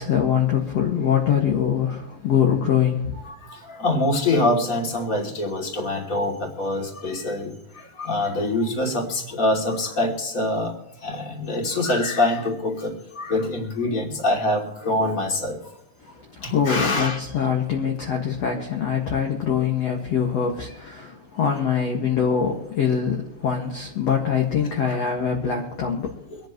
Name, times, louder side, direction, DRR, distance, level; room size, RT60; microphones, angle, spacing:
voice 1, 0.0-3.2 16.3-26.2, left 7 dB, 50° left, 2.1 m, -23 dB
voice 2, 3.3-7.5 8.0-10.7 11.0-15.6 16.4-17.2 24.8-25.0 26.3-26.4, left 1 dB, 20° left, 2.6 m, -25 dB
25.5 x 10.5 x 3.1 m
omnidirectional pair, 4.9 m